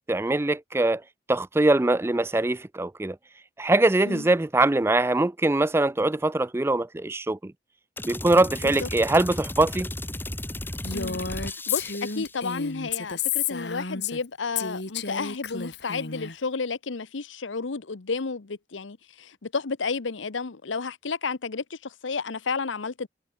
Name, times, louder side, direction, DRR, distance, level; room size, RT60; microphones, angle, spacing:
voice 1, 0.1-1.0 1.3-3.2 3.6-7.5 8.1-9.9, right 2 dB, 15° right, 0.4 m, -22 dB
sound 1, 8.0-12.4, left 1 dB, 10° left, 3.5 m, -35 dB
Female speech woman speaking, 10.8-14.3 14.6-16.3, left 7 dB, 65° left, 2.9 m, -31 dB
voice 2, 11.7-23.1, left 4 dB, 85° left, 0.9 m, -32 dB
head